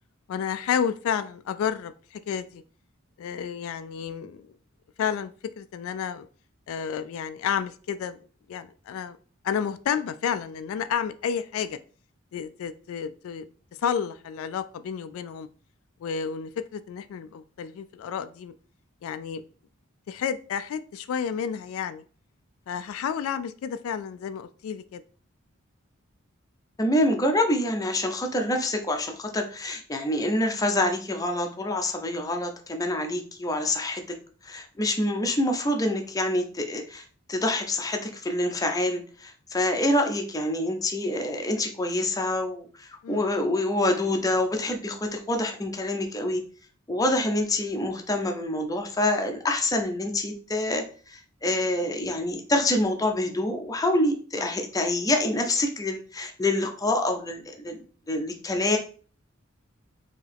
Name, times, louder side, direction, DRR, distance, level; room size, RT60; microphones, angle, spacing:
voice 1, 0.3-2.6 3.2-4.5 5.0-6.3 6.7-8.2 8.5-9.2 9.4-11.8 12.3-13.5 13.8-15.5 16.0-18.5 19.0-19.4 20.1-22.0 22.7-25.0 43.0-43.3 54.4-54.5, left 7 dB, 75° left, 11 dB, 0.3 m, -31 dB
voice 2, 26.8-34.2 34.4-46.4 46.9-58.8, left 1 dB, 15° left, 3 dB, 0.6 m, -26 dB
4.5 x 2.9 x 3.4 m, 0.42 s
head